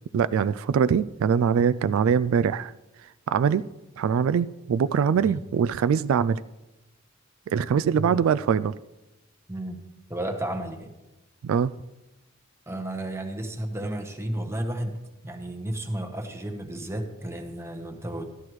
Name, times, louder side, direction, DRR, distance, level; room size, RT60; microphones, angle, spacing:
voice 1, 0.1-2.7 3.3-3.7 4.0-6.4 7.5-8.7 11.4-11.7, right 7 dB, 75° right, 15 dB, 0.3 m, -23 dB
voice 2, 7.7-8.2 9.5-9.8 10.1-10.9 12.7-15.0 15.2-18.2, right 1 dB, 15° right, 4 dB, 1.1 m, -32 dB
13.5 x 11.5 x 3.1 m, 1.0 s
head